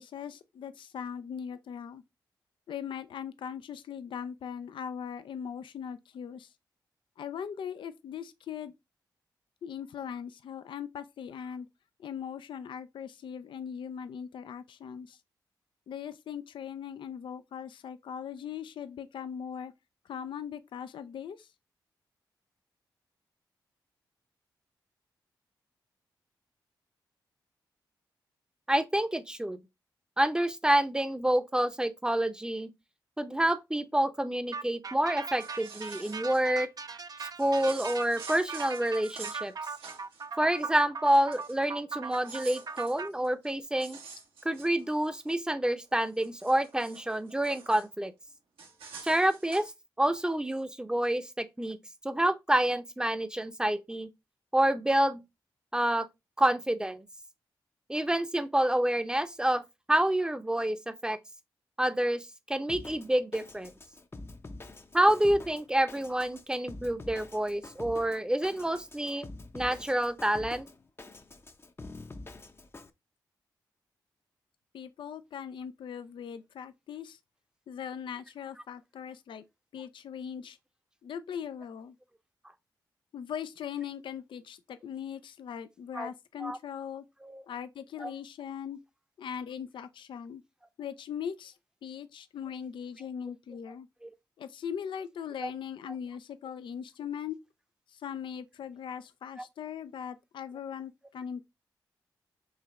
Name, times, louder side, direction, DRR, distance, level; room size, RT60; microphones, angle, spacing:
voice 1, 0.0-2.0 2.7-6.5 7.2-8.7 9.6-11.7 12.0-15.2 15.9-19.7 20.1-21.5 74.7-77.2 77.7-79.4 79.7-80.6 81.0-82.0 83.1-87.0 87.5-88.8 89.2-90.4 90.8-91.6 91.8-93.9 94.4-97.4 97.9-101.4, left 8 dB, 70° left, 0.4 m, -40 dB
voice 2, 28.7-29.6 30.2-32.7 33.2-36.7 37.2-39.5 40.4-44.0 44.4-48.1 49.0-49.7 50.0-51.8 52.0-54.1 54.5-55.2 55.7-56.1 56.4-57.1 57.9-59.6 59.9-61.2 61.8-63.7 64.9-69.3 69.5-70.7 85.9-86.1 86.4-86.6 87.2-87.4 88.0-88.1 94.0-94.1 95.4-95.5, right 1 dB, 10° right, 0.7 m, -28 dB
sound 1, 34.5-43.1, right 5 dB, 45° right, 0.5 m, -40 dB
sound 2, 35.2-36.4 37.4-40.2 40.5-40.7 41.0-41.6 42.0-45.3 45.8-47.9 48.6-49.7, right 5 dB, 80° right, 1.1 m, -48 dB
Drum kit, 62.7-72.9, left 2 dB, 30° left, 0.6 m, -46 dB
4.8 x 3.0 x 3.5 m
supercardioid pair, 45°, 9 cm